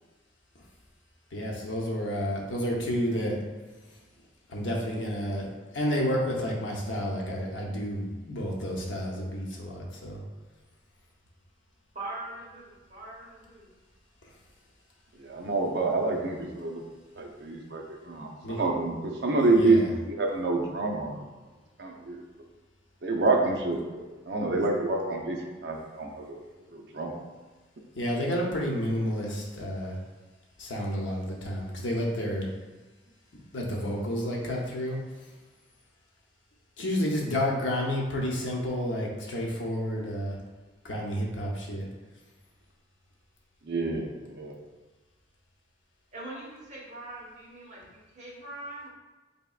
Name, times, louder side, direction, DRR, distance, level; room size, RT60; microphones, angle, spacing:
voice 1, 1.3-3.4 4.5-5.5 5.7-10.2 18.4-18.6 19.5-19.9 28.0-30.0 30.6-32.5 33.5-35.0 36.8-40.4 40.8-41.9, equal, 80° left, -2 dB, 0.8 m, -30 dB
voice 2, 11.9-13.7 46.1-48.9, right 2 dB, 35° right, -5 dB, 1.0 m, -42 dB
voice 3, 15.2-16.8 17.2-19.8 20.1-21.2 21.8-22.2 23.0-26.4 26.7-27.2 43.6-44.5, right 3 dB, 60° right, 0 dB, 0.5 m, -27 dB
4.1 x 3.4 x 2.3 m, 1.2 s
head